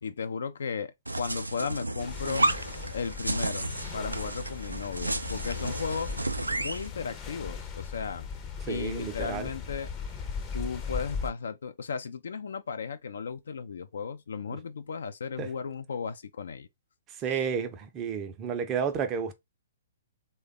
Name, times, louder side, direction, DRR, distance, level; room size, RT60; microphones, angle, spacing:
voice 1, 0.0-2.5 2.9-3.7 3.9-6.1 6.5-8.3 8.7-9.9 10.5-16.7, left 6 dB, 65° left, 0.4 m, -35 dB
sound 1, 1.1-6.9, right 2 dB, 85° right, 0.3 m, -32 dB
sound 2, 2.0-11.3, left 5 dB, 25° left, 0.6 m, -38 dB
voice 2, 8.7-9.5 15.4-15.5 17.2-19.3, right 7 dB, 25° right, 0.5 m, -31 dB
3.3 x 2.2 x 3.6 m
figure-of-eight pair, 120°, 0 cm